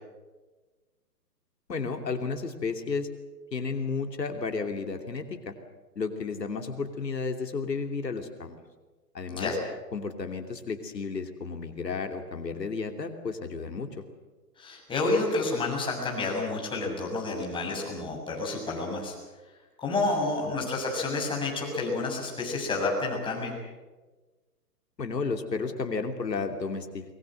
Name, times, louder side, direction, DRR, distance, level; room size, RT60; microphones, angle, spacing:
voice 1, 1.7-3.1 3.5-5.6 6.0-8.6 9.1-9.6 9.9-14.0 20.6-20.7 25.0-27.2, left 4 dB, 85° left, 5 dB, 3.0 m, -32 dB
voice 2, 14.6-19.1 19.8-23.6, left 3 dB, 10° left, -2 dB, 7.1 m, -29 dB
23.5 x 22.5 x 7.8 m, 1.2 s
hypercardioid pair, 140°, 48 cm